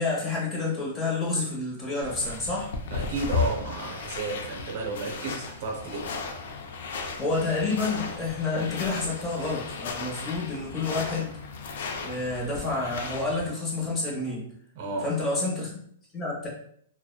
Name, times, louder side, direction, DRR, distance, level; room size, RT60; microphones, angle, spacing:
voice 1, 0.0-2.7 7.2-11.4 12.0-14.4 15.0-15.8 16.1-16.5, left 3 dB, 15° left, -4 dB, 0.9 m, -29 dB
sound 1, 2.0-13.5, left 5 dB, 70° left, 0.4 m, -35 dB
voice 2, 2.9-6.2 14.7-15.1, right 3 dB, 55° right, 0 dB, 0.6 m, -32 dB
2.8 x 2.0 x 2.2 m, 0.64 s
hypercardioid pair, 150°, 0 cm